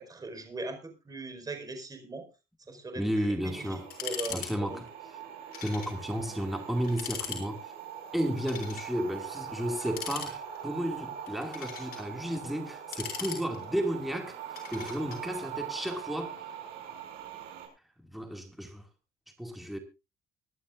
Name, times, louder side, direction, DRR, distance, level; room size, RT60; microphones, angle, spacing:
voice 1, 0.1-2.3 2.7-3.0 3.4-3.6 4.0-4.8, right 2 dB, 20° right, 4.9 m, -39 dB
voice 2, 2.7-3.9 4.3-4.9 5.6-7.7 8.1-16.4 18.0-18.8 19.4-19.8, equal, ahead, 2.4 m, -33 dB
sound 1, 3.4-17.7, right 9 dB, 85° right, 6.6 m, -42 dB
sound 2, 3.9-4.5 4.8-4.9 5.5-6.0 6.3-6.4 6.8-7.4 8.4-8.9 9.8-10.7 11.3-12.0 12.7-13.8 14.6-15.2, left 8 dB, 65° left, 6.1 m, -39 dB
24.0 x 11.5 x 2.6 m
cardioid pair, 110°, 17 cm